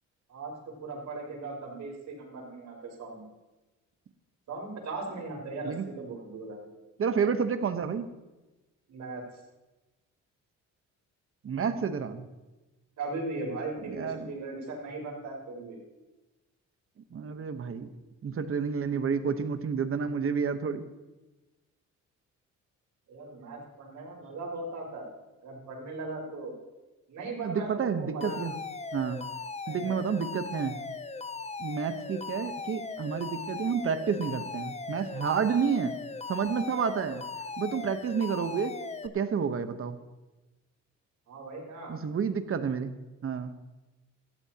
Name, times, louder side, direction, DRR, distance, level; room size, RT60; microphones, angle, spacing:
voice 1, 0.3-3.3 4.5-6.6 8.9-9.2 13.0-15.8 23.1-25.1 25.4-26.5 27.1-28.4 29.6-30.1 41.3-42.0, right 3 dB, 70° right, -1 dB, 4.8 m, -38 dB
voice 2, 7.0-8.1 11.4-12.2 13.9-14.3 17.1-17.9 18.2-20.8 27.4-28.5 28.9-29.2 29.7-30.8 31.6-36.0 36.3-37.3 37.6-38.8 39.0-40.0 41.9-42.9 43.2-43.5, right 6 dB, 45° right, 9 dB, 1.1 m, -30 dB
Alarm, 28.2-39.1, left 4 dB, 20° left, 0.7 m, -39 dB
17.5 x 13.5 x 2.9 m, 1.1 s
cardioid pair, 90°, 30 cm